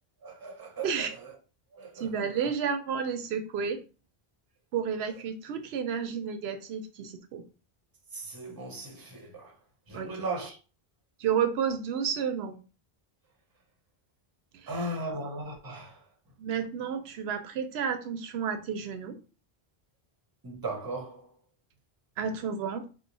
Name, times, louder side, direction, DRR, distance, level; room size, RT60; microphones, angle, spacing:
voice 1, 0.2-1.4 1.7-2.5 8.1-9.6 9.9-10.6 14.7-16.1 20.4-21.3, right 2 dB, 25° right, 0.7 m, -38 dB
voice 2, 2.0-3.8 4.7-7.4 9.9-10.1 11.2-12.6 14.5-14.7 16.4-19.2 22.2-22.9, right 7 dB, 85° right, 0.9 m, -31 dB
2.9 x 2.0 x 3.9 m
omnidirectional pair, 1.0 m